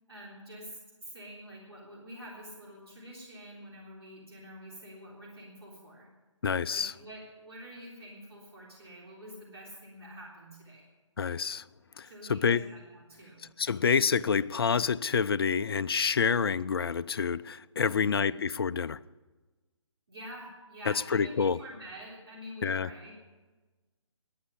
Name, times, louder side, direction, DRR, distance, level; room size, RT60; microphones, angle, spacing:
voice 1, 0.1-6.1 6.7-10.9 12.0-13.5 17.8-18.4 20.1-23.1, equal, 55° right, 3.6 m, -47 dB
voice 2, 6.4-6.9 11.2-11.7 12.0-12.7 13.6-19.0 20.9-21.6 22.6-22.9, left 6 dB, 50° left, 0.4 m, -28 dB
11.0 x 9.4 x 9.9 m
figure-of-eight pair, 145°, 16 cm